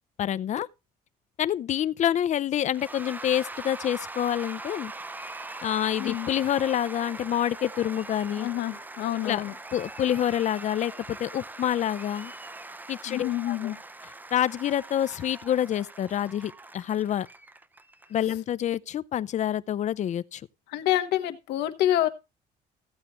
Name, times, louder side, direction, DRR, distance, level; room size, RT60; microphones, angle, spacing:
voice 1, 0.2-0.7 1.4-4.9 5.6-8.5 9.3-9.4 9.7-12.3 12.9-13.7 14.3-17.3 18.1-20.4, left 11 dB, 45° left, 0.5 m, -27 dB
Cheering / Applause / Crowd, 2.7-18.3, right 2 dB, 10° right, 0.5 m, -42 dB
voice 2, 8.4-9.5 13.1-13.8 20.7-22.1, left 13 dB, 85° left, 1.2 m, -27 dB
15.5 x 8.1 x 3.1 m
cardioid pair, 110°, 17 cm